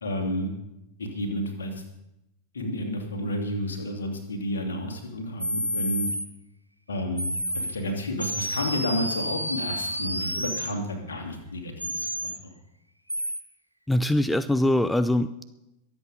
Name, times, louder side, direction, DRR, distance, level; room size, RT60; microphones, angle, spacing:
voice 1, 0.0-0.5 1.0-1.7 2.5-6.1 6.9-7.3 7.5-12.1, left 1 dB, 70° left, 3 dB, 2.7 m, -31 dB
sound 1, 5.4-6.3 7.2-7.7 8.2-10.7 11.8-12.4 13.1-13.4, equal, 90° right, 0.8 m, -30 dB
voice 2, 13.9-15.4, left 1 dB, 5° left, 13 dB, 0.5 m, -23 dB
23.0 x 8.1 x 5.2 m, 0.90 s
figure-of-eight pair, 90°, 0 cm